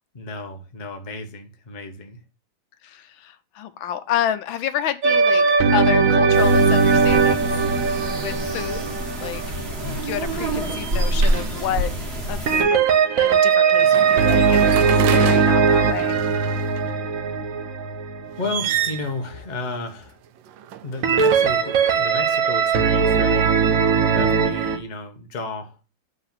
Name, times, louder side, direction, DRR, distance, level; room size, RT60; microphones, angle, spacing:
voice 1, 0.1-2.2 9.8-10.1 18.4-20.2 20.8-23.6 24.1-25.8, left 3 dB, 30° left, 1.0 m, -33 dB
voice 2, 2.8-7.5 8.2-8.9 9.2-9.4 10.0-11.9 12.3-12.9 13.2-16.2, left 10 dB, 75° left, 1.4 m, -29 dB
sound 1, 5.0-10.0 12.5-18.5 21.0-24.8, right 5 dB, 55° right, 1.0 m, -19 dB
sound 2, 6.3-12.6, right 1 dB, 35° right, 1.6 m, -26 dB
sound 3, 9.1-9.4 9.8-11.9 13.7-16.8 18.3-19.2 20.4-21.7, right 11 dB, 75° right, 1.3 m, -30 dB
8.1 x 4.0 x 5.7 m
omnidirectional pair, 2.2 m